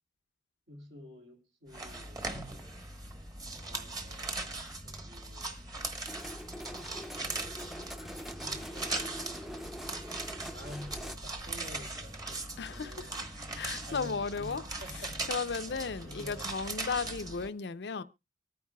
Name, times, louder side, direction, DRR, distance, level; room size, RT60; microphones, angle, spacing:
voice 1, 0.7-2.3 3.5-4.4 4.8-5.6 7.2-9.3 10.5-13.3 13.8-15.3 15.7-16.5, equal, 75° right, 2.7 m, -50 dB
sound 1, 1.7-17.5, right 2 dB, 20° right, 1.1 m, -40 dB
sound 2, 6.1-11.2, equal, ahead, 0.6 m, -44 dB
voice 2, 12.6-13.1 13.5-14.6 15.3-18.0, left 5 dB, 70° left, 0.5 m, -35 dB
24.0 x 9.4 x 2.2 m
head